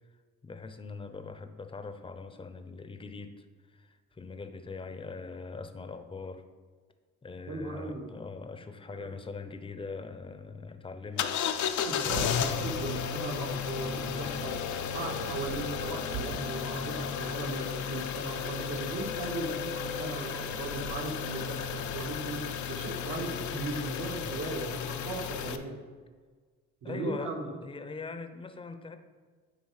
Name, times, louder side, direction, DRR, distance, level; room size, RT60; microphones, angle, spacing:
voice 1, 0.4-6.4 7.2-11.4 26.8-27.3 27.6-29.0, left 4 dB, 15° left, 8 dB, 0.6 m, -42 dB
voice 2, 7.5-8.0 8.9-9.1 11.2-11.3 11.8-25.8 26.8-27.5, right 2 dB, 70° right, -1 dB, 1.8 m, -37 dB
sound 1, 11.2-25.6, left 7 dB, 75° left, 0.6 m, -34 dB
sound 2, 11.7-16.4, right 9 dB, 90° right, 0.5 m, -45 dB
9.9 x 3.4 x 4.8 m, 1.5 s
cardioid pair, 90°, 30 cm